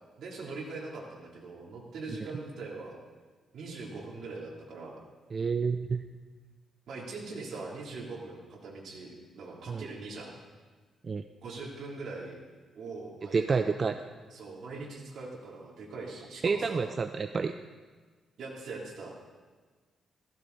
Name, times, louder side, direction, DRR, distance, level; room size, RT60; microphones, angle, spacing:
voice 1, 0.2-3.0 3.5-5.0 6.9-10.4 11.4-12.4 12.7-13.9 14.3-16.9 18.4-19.2, right 3 dB, 65° right, -3 dB, 3.3 m, -42 dB
voice 2, 5.3-6.0 9.7-9.8 11.0-11.2 13.3-14.0 16.4-17.5, right 5 dB, 35° right, 8 dB, 0.5 m, -29 dB
16.0 x 15.0 x 4.1 m, 1.4 s
cardioid pair, 135°, 0 cm